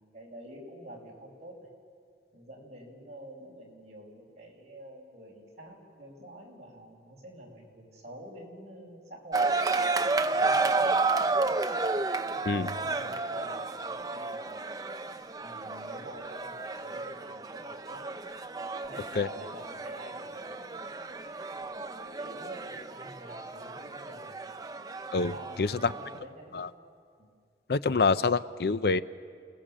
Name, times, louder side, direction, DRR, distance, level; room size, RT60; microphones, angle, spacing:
voice 1, 0.0-1.6 2.3-9.5 10.1-11.0 12.6-14.8 15.4-18.1 18.9-20.8 21.6-24.3 25.3-26.7 27.2-27.3, right 1 dB, 40° right, -2 dB, 5.2 m, -48 dB
sound 1, 9.3-26.2, right 3 dB, 20° right, 0.6 m, -32 dB
voice 2, 25.6-25.9 26.5-26.7 27.7-29.0, left 4 dB, 60° left, 14 dB, 0.5 m, -26 dB
29.5 x 18.5 x 7.5 m, 2.2 s
head